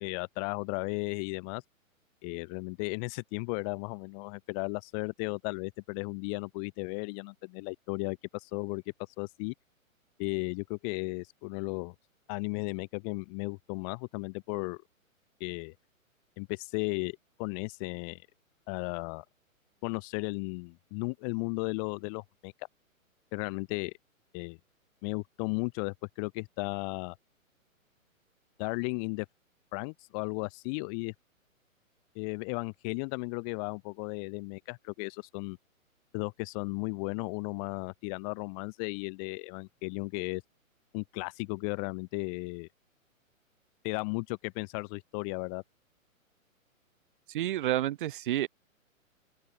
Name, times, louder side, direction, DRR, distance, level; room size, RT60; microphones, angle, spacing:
voice 1, 0.0-1.6 2.2-8.8 9.2-9.5 10.2-11.9 12.3-14.8 15.4-15.7 16.4-18.2 18.7-19.2 19.8-22.5 23.3-23.9 24.3-24.6 25.0-27.1 28.6-29.2 29.7-31.1 32.1-35.6 36.1-40.4 40.9-42.7 43.8-45.6, left 36 dB, 25° left, 1.4 m, -35 dB
voice 2, 47.3-48.5, right 13 dB, 40° right, 1.0 m, -29 dB
open air
figure-of-eight pair, 125°, 41 cm